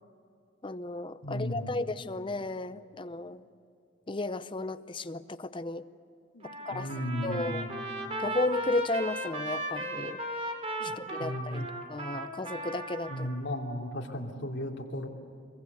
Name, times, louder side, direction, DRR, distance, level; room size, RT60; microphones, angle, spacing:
voice 1, 0.6-3.4 4.1-5.9 6.7-6.9 7.2-7.6 8.2-10.2 10.8-13.3, left 2 dB, 25° left, 12 dB, 0.7 m, -34 dB
voice 2, 1.2-1.8 6.3-7.9 10.8-10.9 11.2-11.7 13.1-15.1, equal, 65° left, 0 dB, 2.9 m, -35 dB
Trumpet, 6.4-13.3, right 1 dB, 30° right, 2.7 m, -36 dB
24.0 x 22.5 x 8.1 m, 2.6 s
head